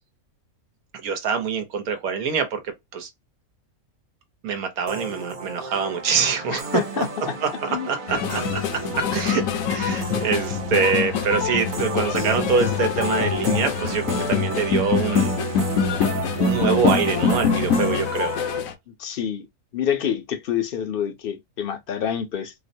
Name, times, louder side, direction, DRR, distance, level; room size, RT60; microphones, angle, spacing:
voice 1, 1.0-2.6 2.9-3.1 4.4-7.1 7.4-8.4 8.9-9.4 9.7-15.3 16.4-18.4, right 6 dB, 90° right, 1.3 m, -24 dB
sound 1, 4.9-18.6, right 3 dB, 45° right, 0.7 m, -33 dB
voice 2, 6.5-7.3 7.7-8.3 18.9-19.5 19.7-22.5, left 8 dB, 55° left, 0.7 m, -27 dB
sound 2, 8.1-18.7, left 6 dB, 70° left, 1.0 m, -24 dB
4.4 x 2.1 x 2.6 m
omnidirectional pair, 1.5 m